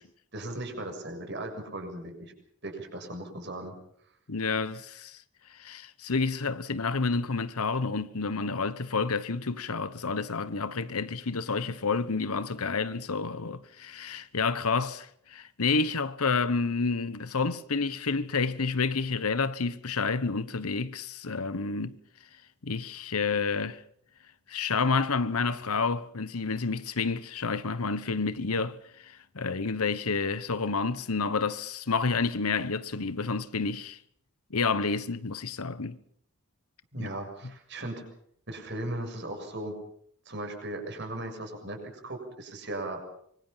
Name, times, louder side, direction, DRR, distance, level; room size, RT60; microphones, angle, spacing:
voice 1, 0.3-2.3 2.6-3.7 36.9-38.0 38.5-39.8 40.3-43.1, right 1 dB, 50° right, 7.0 m, -37 dB
voice 2, 4.3-5.2 5.5-22.0 22.6-23.8 24.5-34.0 34.5-36.0 37.0-37.1, left 4 dB, 85° left, 1.2 m, -29 dB
25.5 x 24.0 x 5.8 m
head